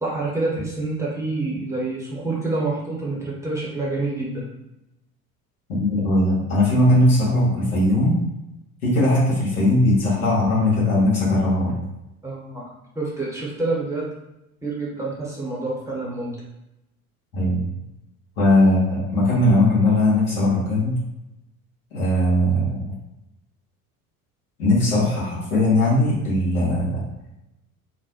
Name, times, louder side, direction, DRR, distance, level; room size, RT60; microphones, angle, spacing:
voice 1, 0.0-4.5 12.2-12.7 13.0-14.0 14.6-16.4, right 2 dB, 5° right, -6 dB, 0.8 m, -27 dB
voice 2, 5.7-8.2 8.8-11.8 17.3-17.6 18.4-21.0 21.9-22.8 24.6-27.0, left 1 dB, 75° left, -7 dB, 1.1 m, -19 dB
2.5 x 2.1 x 2.7 m, 0.88 s
figure-of-eight pair, 60°, 43 cm